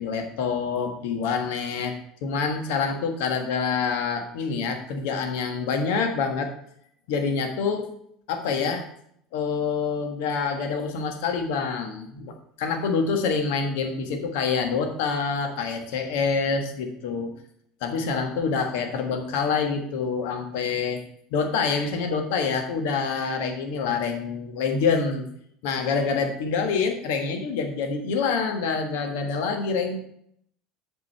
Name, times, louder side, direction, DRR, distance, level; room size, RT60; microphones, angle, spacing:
voice 1, 0.0-1.9 2.2-6.5 7.1-7.9 8.3-8.8 9.3-17.3 17.8-21.0 21.3-25.2 25.6-30.0, left 5 dB, 70° left, 5 dB, 1.4 m, -26 dB
8.0 x 5.3 x 5.6 m, 0.68 s
hypercardioid pair, 80°, 0 cm